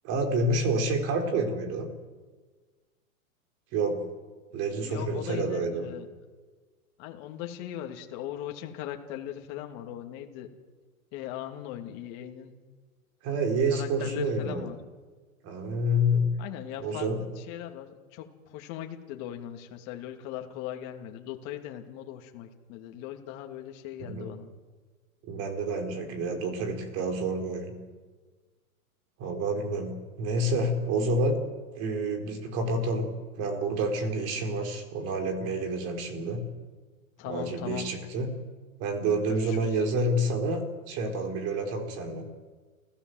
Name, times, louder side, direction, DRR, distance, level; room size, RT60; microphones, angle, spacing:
voice 1, 0.0-1.9 3.7-4.0 4.5-5.9 13.2-14.7 15.4-16.3 16.8-17.2 24.0-24.3 25.2-27.8 29.2-31.4 31.8-36.5 37.2-38.4 38.8-42.3, right 1 dB, 35° right, 6 dB, 4.3 m, -28 dB
voice 2, 4.8-6.1 7.0-10.5 11.1-12.5 13.7-14.8 16.4-17.1 17.4-24.5 37.2-37.9 39.3-39.8, left 11 dB, 35° left, 4 dB, 2.7 m, -39 dB
29.0 x 16.5 x 8.0 m, 1.4 s
hypercardioid pair, 145°, 43 cm